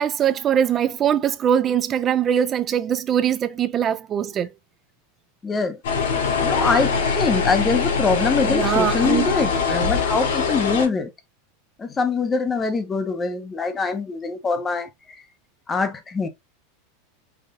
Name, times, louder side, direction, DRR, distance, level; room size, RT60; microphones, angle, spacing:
voice 1, 0.0-4.5 8.4-9.3, right 9 dB, 25° right, 0.5 m, -22 dB
voice 2, 5.4-5.8 6.4-11.1 11.8-14.9 15.7-16.3, left 4 dB, 15° left, 0.8 m, -23 dB
sound 1, 5.8-10.9, left 5 dB, 85° left, 2.8 m, -22 dB
5.7 x 2.4 x 3.7 m
supercardioid pair, 155°, 0 cm